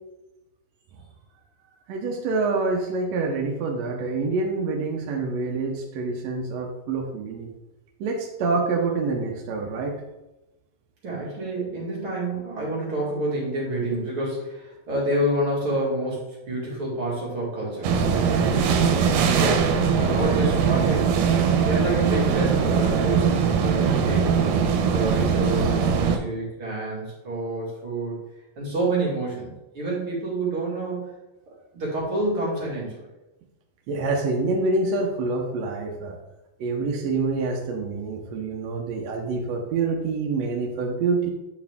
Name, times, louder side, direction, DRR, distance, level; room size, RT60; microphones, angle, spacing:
voice 1, 1.9-7.5 8.0-10.0 33.9-36.2 36.6-41.3, right 3 dB, 70° right, 0 dB, 1.7 m, -26 dB
voice 2, 11.0-19.7 20.0-21.1 21.6-24.3 24.9-28.2 28.6-31.1 31.7-33.1, right 1 dB, 45° right, -6 dB, 2.7 m, -28 dB
sound 1, 17.8-26.2, right 6 dB, 90° right, 2.3 m, -21 dB
9.4 x 4.8 x 3.5 m, 1.0 s
omnidirectional pair, 3.8 m